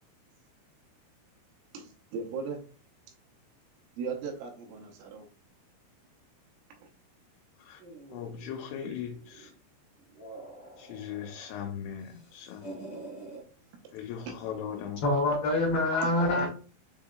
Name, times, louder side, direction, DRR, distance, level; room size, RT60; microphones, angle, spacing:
voice 1, 1.7-2.6 4.0-5.3 14.3-14.4 16.0-16.1, right 5 dB, 85° right, 3.2 m, -37 dB
sound 1, 7.8-9.6 10.0-11.7 12.0-13.4 14.2-15.0, right 2 dB, 35° left, 1.8 m, -47 dB
voice 2, 8.1-9.5 10.8-12.7 13.9-15.0, left 8 dB, 85° left, 3.2 m, -39 dB
voice 3, 15.0-16.5, left 2 dB, 70° left, 2.5 m, -25 dB
7.3 x 2.8 x 2.3 m
omnidirectional pair, 5.6 m